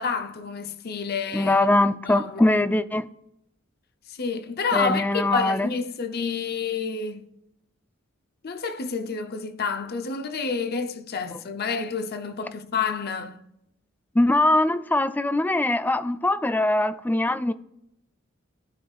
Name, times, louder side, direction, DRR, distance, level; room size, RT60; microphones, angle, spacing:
voice 1, 0.0-1.6 2.0-2.7 4.1-7.3 8.4-13.4, left 5 dB, 50° left, 0.6 m, -29 dB
voice 2, 1.3-3.1 4.7-5.7 11.3-11.4 14.1-17.5, left 2 dB, 10° left, 0.3 m, -22 dB
15.5 x 5.4 x 2.4 m
head